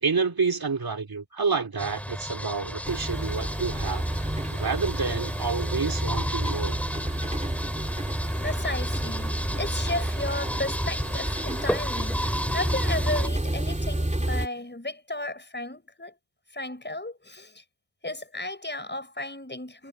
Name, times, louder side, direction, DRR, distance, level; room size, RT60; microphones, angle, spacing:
voice 1, 0.0-4.1 4.5-6.8, right 4 dB, 45° right, 2.9 m, -28 dB
sound 1, 1.8-13.3, equal, 5° left, 3.9 m, -32 dB
sound 2, 2.8-14.5, right 1 dB, 15° right, 3.2 m, -30 dB
voice 2, 8.4-16.2 16.5-17.6 18.0-19.9, left 2 dB, 20° left, 5.9 m, -34 dB
cardioid pair, 45°, 49 cm